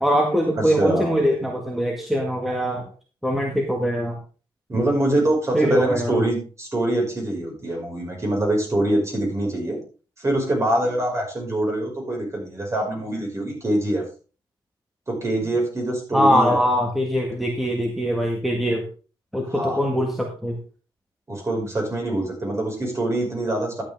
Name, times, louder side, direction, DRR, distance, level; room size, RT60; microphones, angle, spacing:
voice 1, 0.0-2.9 3.2-4.2 5.5-6.2 16.1-18.8 19.3-20.6, equal, ahead, 1 dB, 1.7 m, -22 dB
voice 2, 0.5-1.2 4.7-9.8 10.2-14.1 15.1-16.6 19.5-19.8 21.3-23.8, right 1 dB, 30° right, 0 dB, 5.4 m, -24 dB
11.5 x 8.3 x 3.5 m, 0.36 s
cardioid pair, 95°, 9 cm